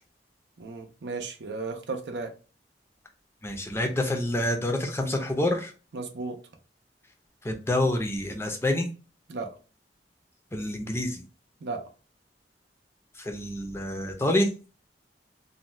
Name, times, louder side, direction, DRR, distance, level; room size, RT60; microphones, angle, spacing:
voice 1, 0.6-2.3 5.9-6.4 9.3-9.5 11.6-11.8, right 3 dB, 75° right, 4 dB, 0.5 m, -34 dB
voice 2, 3.4-5.7 7.4-8.9 10.5-11.2 13.2-14.5, left 1 dB, 15° left, 3 dB, 0.5 m, -27 dB
2.6 x 2.2 x 3.1 m, 0.34 s
head